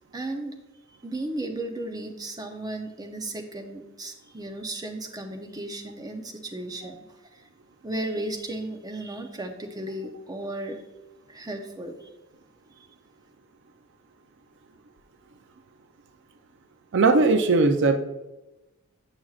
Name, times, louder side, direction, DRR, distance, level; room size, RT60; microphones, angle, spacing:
voice 1, 0.1-0.6 1.0-7.0 7.3-7.4 7.8-10.8 11.3-12.1, right 1 dB, 20° right, 4 dB, 0.7 m, -35 dB
voice 2, 16.9-18.0, right 3 dB, 55° right, 7 dB, 0.5 m, -19 dB
8.7 x 6.0 x 2.4 m, 0.99 s
head